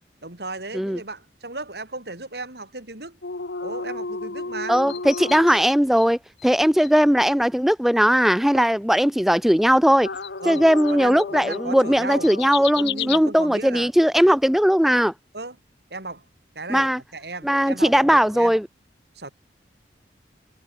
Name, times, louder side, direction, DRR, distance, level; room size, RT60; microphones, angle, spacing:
voice 1, 0.2-3.2 3.6-4.8 8.5-8.7 10.4-12.3 12.8-13.9 15.3-15.6 15.9-16.2 16.6-18.5 19.2-19.3, right 3 dB, 70° right, 3.9 m, -35 dB
sound 1, 3.2-6.1 6.4-6.5 6.8-6.9 10.0-13.2, left 5 dB, 75° left, 1.2 m, -32 dB
voice 2, 4.7-10.1 10.5-15.1 16.7-17.0 17.4-18.7, equal, ahead, 0.3 m, -19 dB
head